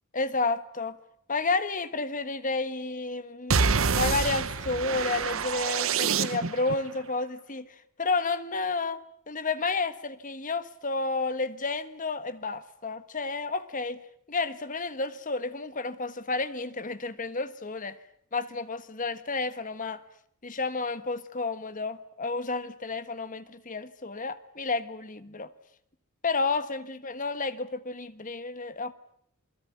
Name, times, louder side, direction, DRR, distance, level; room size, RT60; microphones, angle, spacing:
voice 1, 0.1-1.0 1.3-3.6 4.0-14.0 14.3-18.0 18.3-20.0 20.4-25.5 26.2-28.9, left 3 dB, 40° left, 1.3 m, -31 dB
sound 1, 3.5-6.7, right 5 dB, 65° right, 1.0 m, -27 dB
28.0 x 21.5 x 9.2 m
head